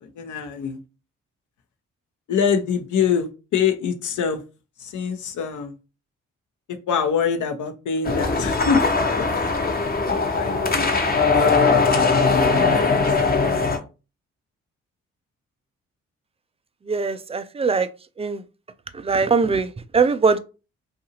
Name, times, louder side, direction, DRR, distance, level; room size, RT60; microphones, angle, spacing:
voice 1, 0.0-0.8 2.3-4.4 4.8-5.7 6.9-8.8 9.2-9.5 10.1-10.9 11.3-11.7 12.4-12.9 13.2-13.7, left 6 dB, 65° left, 0.7 m, -25 dB
sound 1, 8.0-13.8, left 4 dB, 30° left, 0.7 m, -20 dB
voice 2, 16.9-17.9 18.2-18.4 18.9-20.4, right 4 dB, 20° right, 0.4 m, -21 dB
2.7 x 2.5 x 2.8 m
hypercardioid pair, 45°, 33 cm